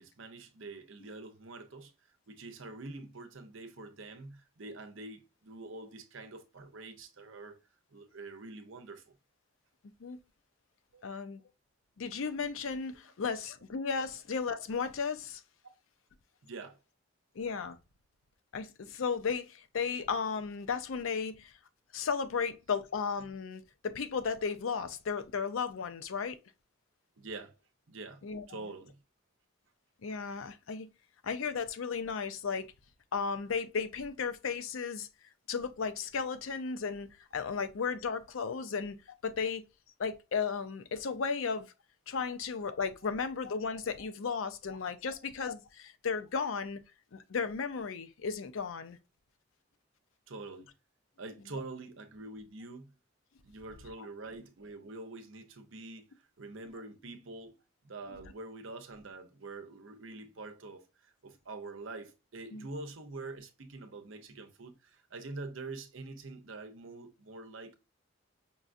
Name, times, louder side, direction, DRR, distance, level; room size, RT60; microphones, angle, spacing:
voice 1, 0.0-1.9 2.3-7.6 7.9-9.1 10.9-11.0 16.4-16.8 27.2-27.5 27.9-29.0 43.0-43.1 45.1-45.2 50.3-50.7 51.2-52.9 53.4-57.6 57.8-67.7, right 3 dB, 70° right, 0.7 m, -45 dB
voice 2, 11.0-11.4 12.0-15.4 17.4-17.8 18.5-21.5 21.9-26.4 28.2-28.7 30.0-30.9 31.2-32.7 33.1-35.1 35.5-37.1 37.3-39.0 39.2-39.6 40.0-41.7 42.1-46.8 47.1-49.0 62.5-62.7, left 5 dB, 75° left, 0.5 m, -34 dB
5.4 x 2.4 x 2.5 m
head